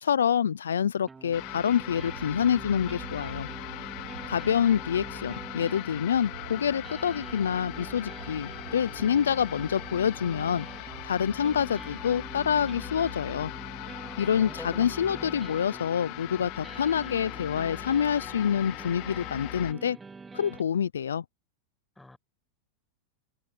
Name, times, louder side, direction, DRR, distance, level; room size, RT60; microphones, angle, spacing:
voice 1, 0.0-3.5 4.3-13.5 14.2-20.0 20.3-21.2, left 8 dB, 85° left, 0.6 m, -27 dB
sound 1, 1.1-20.6, right 4 dB, 15° right, 4.3 m, -45 dB
sound 2, 1.2-13.3, right 9 dB, 80° right, 5.5 m, -47 dB
sound 3, 1.3-19.7, left 25 dB, 55° left, 1.7 m, -40 dB
voice 2, 14.0-15.5 22.0-22.2, left 2 dB, 5° left, 6.6 m, -47 dB
hypercardioid pair, 100°, 0 cm